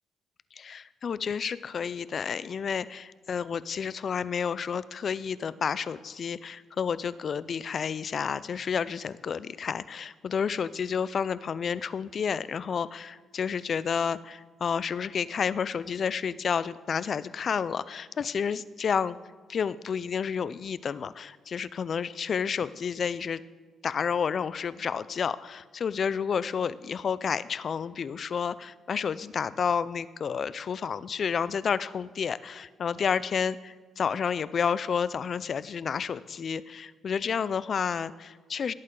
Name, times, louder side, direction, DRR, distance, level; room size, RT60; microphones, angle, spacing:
voice 1, 0.6-19.2 19.5-23.4 23.8-38.7, left 6 dB, 50° left, 17 dB, 0.4 m, -30 dB
18.0 x 8.5 x 3.8 m, 1.4 s
cardioid pair, 90°, 0 cm